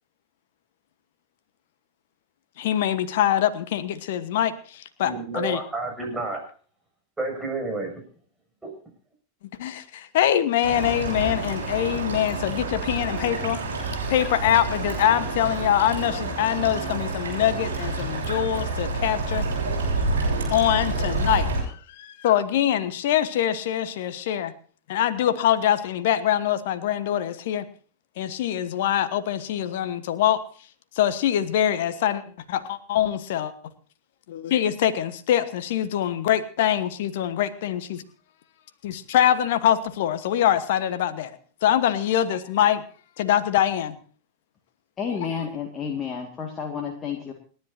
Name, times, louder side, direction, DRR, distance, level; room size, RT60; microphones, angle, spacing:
voice 1, 2.6-5.6 9.6-13.6 14.1-19.5 20.5-24.5 24.9-27.6 28.2-30.4 30.9-32.2 32.5-33.5 34.3-38.0 38.8-42.8 43.2-44.0 45.1-45.4, left 11 dB, 55° left, 13 dB, 1.2 m, -24 dB
voice 2, 5.0-6.4 7.2-7.9 8.6-8.7, right 2 dB, 10° right, 1 dB, 6.9 m, -30 dB
sound 1, 10.6-21.6, right 3 dB, 70° right, 7.2 m, -28 dB
voice 3, 45.0-47.3, left 6 dB, 25° left, 2 dB, 2.1 m, -30 dB
28.5 x 10.5 x 2.7 m, 0.43 s
figure-of-eight pair, 90°, 0 cm